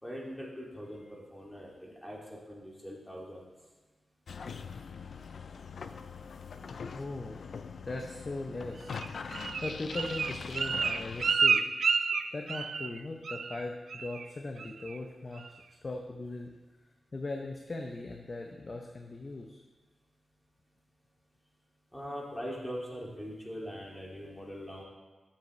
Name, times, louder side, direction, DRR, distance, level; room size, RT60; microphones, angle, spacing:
voice 1, 0.0-3.5 21.9-24.8, equal, 10° left, -4 dB, 2.3 m, -42 dB
sound 1, 4.3-11.3, left 5 dB, 75° left, 0.4 m, -42 dB
voice 2, 6.9-7.4 7.8-9.0 9.2-11.6 12.3-15.6 15.8-16.5 17.1-19.6, left 2 dB, 40° left, 2 dB, 0.7 m, -39 dB
Bird, 8.9-13.0 13.3-13.6 13.9-14.3 14.6-15.0 15.4-15.5, right 5 dB, 75° right, 0.3 m, -30 dB
12.0 x 7.4 x 3.2 m, 1.3 s
wide cardioid pair, 105°, 0 cm